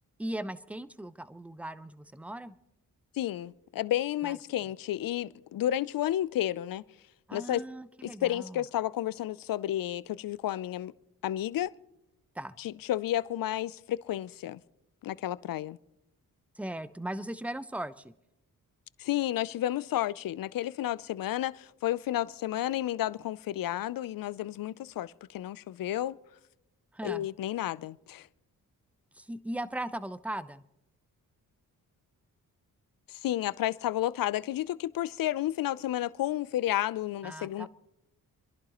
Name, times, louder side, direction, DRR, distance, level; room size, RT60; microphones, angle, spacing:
voice 1, 0.2-2.6 4.2-4.4 7.3-8.6 12.3-12.6 16.5-18.1 26.9-27.3 29.1-30.6 37.2-37.7, right 1 dB, 5° right, 0.6 m, -38 dB
voice 2, 3.2-6.8 7.3-7.6 8.0-10.9 11.2-11.7 12.6-14.6 15.0-15.8 19.0-26.2 27.0-28.3 33.1-37.7, left 13 dB, 65° left, 0.5 m, -31 dB
29.0 x 11.0 x 3.0 m
cardioid pair, 60°, 37 cm